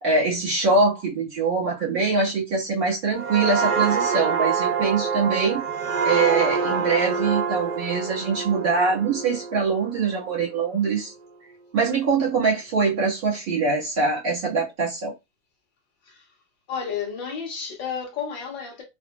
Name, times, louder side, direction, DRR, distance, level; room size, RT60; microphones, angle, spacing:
voice 1, 0.0-5.6 6.0-11.1 11.7-15.1, right 4 dB, 35° right, 1.4 m, -23 dB
sound 1, 3.1-10.6 11.0-11.3, right 5 dB, 85° right, 1.0 m, -26 dB
voice 2, 16.7-18.8, left 6 dB, 20° left, 0.5 m, -32 dB
3.5 x 2.1 x 2.2 m
supercardioid pair, 170°, 39 cm